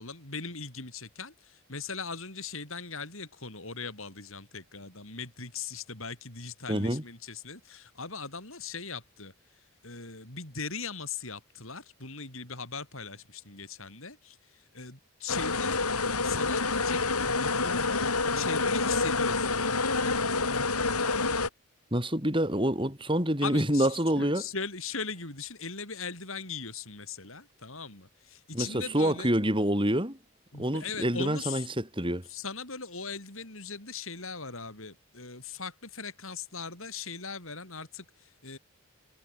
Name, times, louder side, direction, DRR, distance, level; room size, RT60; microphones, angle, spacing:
voice 1, 0.0-15.8 16.2-19.6 23.4-29.3 30.5-31.7 32.3-38.6, left 5 dB, 65° left, 6.5 m, -39 dB
voice 2, 6.7-7.0 21.9-24.4 28.5-30.2 30.6-32.3, right 1 dB, 20° right, 7.4 m, -27 dB
sound 1, 15.3-21.5, left 3 dB, 85° left, 6.9 m, -27 dB
head